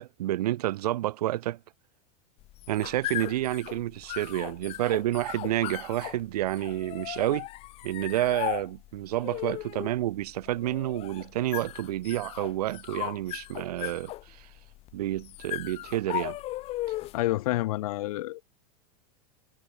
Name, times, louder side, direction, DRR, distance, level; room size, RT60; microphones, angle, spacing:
voice 1, 0.0-1.6 2.7-7.5 7.8-14.5 14.9-16.4, right 14 dB, 75° right, 4.5 m, -29 dB
sound 1, 2.4-17.3, left 17 dB, 30° left, 2.5 m, -37 dB
voice 2, 17.1-18.5, left 17 dB, 60° left, 5.4 m, -29 dB
supercardioid pair, 170°, 20 cm